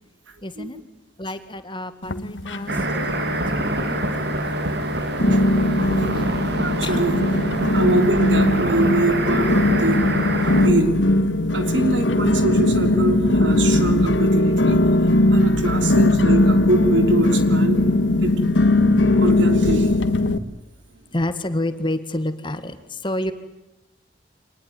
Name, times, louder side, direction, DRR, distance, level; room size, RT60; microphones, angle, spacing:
voice 1, 0.4-0.8 1.2-4.6 6.1-6.4 6.8-7.2 21.1-23.3, left 1 dB, 25° left, 10 dB, 1.8 m, -29 dB
sound 1, 2.0-3.0 3.2-3.9 4.4-4.5 5.2-20.4, left 1 dB, 85° left, 1.6 m, -19 dB
sound 2, 2.7-10.7, right 1 dB, 65° right, 3.0 m, -25 dB
voice 2, 6.6-7.2 7.7-10.0 10.4-10.9 11.5-14.8 15.3-17.8 18.2-18.4 19.1-19.9, right 2 dB, 85° right, 7 dB, 3.3 m, -24 dB
24.5 x 20.0 x 9.4 m, 0.94 s
head